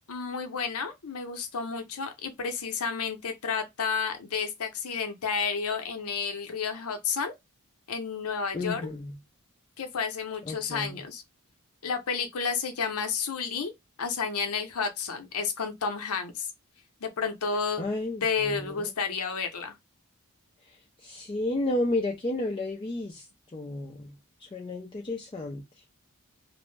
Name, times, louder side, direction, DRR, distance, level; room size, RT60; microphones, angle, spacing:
voice 1, 0.1-7.3 7.9-8.8 9.8-11.2 11.8-13.7 14.0-16.5 17.0-17.8 18.2-19.7, left 5 dB, 90° left, 0.6 m, -31 dB
voice 2, 8.5-9.1 10.5-11.0 17.8-18.9 21.0-23.2 23.5-24.1 24.5-25.6, left 2 dB, 25° left, 0.4 m, -32 dB
2.5 x 2.1 x 3.1 m
head